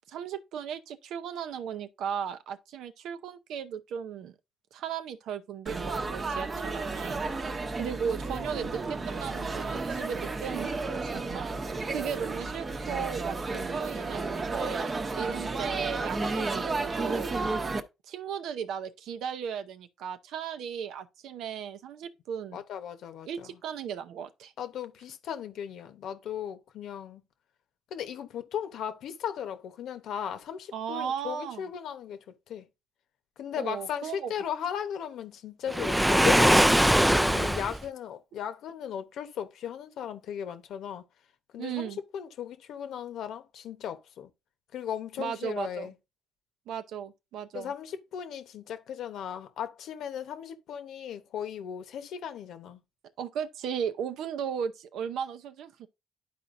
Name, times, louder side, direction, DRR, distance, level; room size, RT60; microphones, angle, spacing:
voice 1, 0.1-4.3 4.7-7.2 7.8-11.6 11.9-14.9 15.2-17.3 18.1-22.6 23.3-24.5 30.7-31.6 33.6-34.3 41.6-42.0 45.2-45.9 46.7-47.7 53.2-55.9, right 8 dB, 85° right, 0.6 m, -36 dB
Laughter / Chatter / Crowd, 5.7-17.8, right 3 dB, 35° right, 0.9 m, -32 dB
voice 2, 16.2-17.1 22.5-23.6 24.6-27.2 27.9-32.6 33.4-41.0 41.5-44.3 44.7-45.9 47.5-52.8, left 9 dB, 75° left, 1.0 m, -37 dB
Waves surf, 35.7-37.8, equal, 5° right, 0.3 m, -21 dB
11.5 x 4.3 x 2.6 m
cardioid pair, 90°, 0 cm